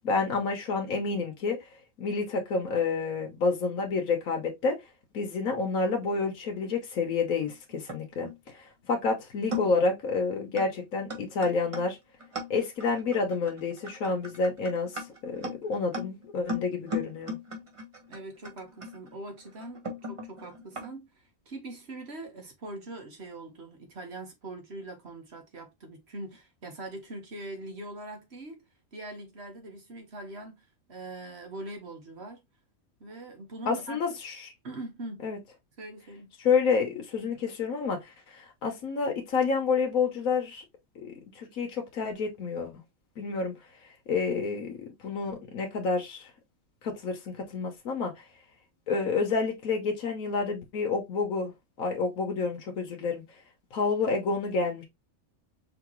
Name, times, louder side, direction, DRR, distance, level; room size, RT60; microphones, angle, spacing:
voice 1, 0.0-1.7 2.0-4.8 5.1-12.0 12.5-17.4 33.7-34.5 35.2-35.4 36.4-40.6 41.0-42.7 43.2-43.5 44.1-46.3 46.8-48.2 48.9-51.5 51.8-53.2 53.7-54.8, left 4 dB, 85° left, 1.4 m, -29 dB
sound 1, 7.4-8.4 9.0-9.1 9.5-9.9 10.6-10.7 11.1-20.9, left 1 dB, 25° right, 1.1 m, -38 dB
voice 2, 18.1-28.6 28.9-32.4 33.0-34.0 34.6-35.3 35.8-36.3, right 2 dB, 50° right, 1.5 m, -42 dB
5.0 x 3.0 x 3.0 m
omnidirectional pair, 1.4 m